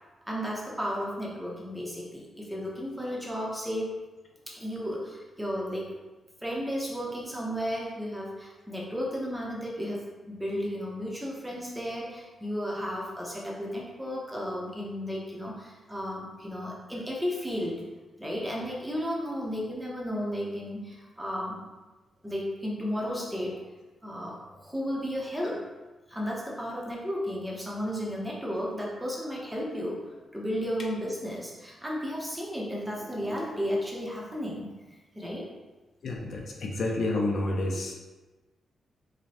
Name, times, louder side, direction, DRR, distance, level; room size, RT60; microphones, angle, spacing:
voice 1, 0.3-3.9 4.5-6.0 6.4-17.9 18.2-21.6 22.2-23.6 24.0-25.6 26.1-30.0 30.3-34.7 35.1-35.5, equal, 5° right, -4 dB, 0.7 m, -33 dB
voice 2, 36.0-37.9, left 2 dB, 55° left, -1 dB, 0.5 m, -29 dB
4.9 x 2.1 x 2.8 m, 1.2 s
wide cardioid pair, 140°, 0 cm